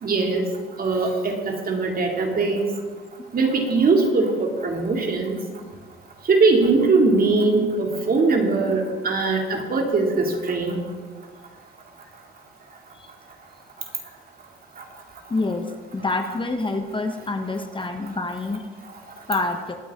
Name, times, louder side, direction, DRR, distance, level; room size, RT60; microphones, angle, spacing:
voice 1, 0.0-0.5 0.8-2.6 3.3-5.4 6.3-10.8, right 3 dB, 50° right, 1 dB, 2.6 m, -21 dB
voice 2, 15.3-18.7 19.3-19.8, left 2 dB, 25° left, 6 dB, 1.1 m, -27 dB
20.0 x 8.8 x 3.7 m, 1.5 s
cardioid pair, 90°, 20 cm